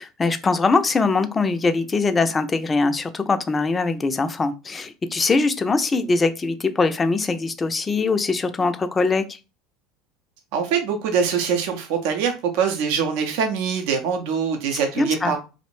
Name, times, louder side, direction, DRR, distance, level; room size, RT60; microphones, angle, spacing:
voice 1, 0.0-9.4 14.7-15.3, left 3 dB, 25° left, 0.3 m, -22 dB
voice 2, 10.5-15.4, right 6 dB, 70° right, 0.5 m, -23 dB
2.5 x 2.0 x 3.0 m
supercardioid pair, 95°, 0 cm